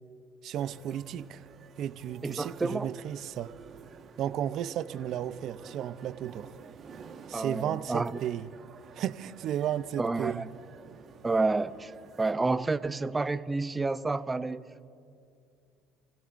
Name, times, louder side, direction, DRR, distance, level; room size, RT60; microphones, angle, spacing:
voice 1, 0.4-1.4 1.8-3.5 4.2-6.5 7.3-8.5 8.9-10.5, right 10 dB, 60° right, 13 dB, 0.6 m, -33 dB
sound 1, 0.5-12.3, right 6 dB, 45° right, 1.4 m, -52 dB
voice 2, 2.2-2.9 7.3-8.2 10.0-10.5 11.2-11.9 12.2-14.6, right 3 dB, 15° right, 13 dB, 0.6 m, -29 dB
30.0 x 16.5 x 2.6 m, 2.5 s
supercardioid pair, 100°, 0 cm